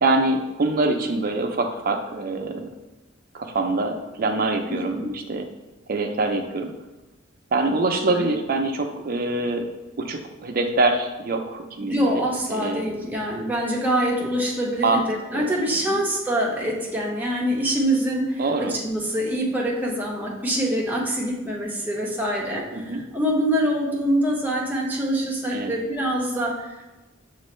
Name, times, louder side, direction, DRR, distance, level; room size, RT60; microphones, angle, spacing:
voice 1, 0.0-2.7 3.3-5.5 5.9-6.7 7.5-9.6 10.0-12.2 12.5-12.9 14.8-15.0 15.3-15.5 15.9-16.0 18.4-18.7 22.7-23.0 25.5-25.7, right 2 dB, 45° right, 4 dB, 0.5 m, -24 dB
voice 2, 4.7-5.1 8.1-8.3 11.8-26.9, right 1 dB, 10° right, -3 dB, 0.7 m, -25 dB
6.1 x 2.5 x 3.1 m, 1.1 s
head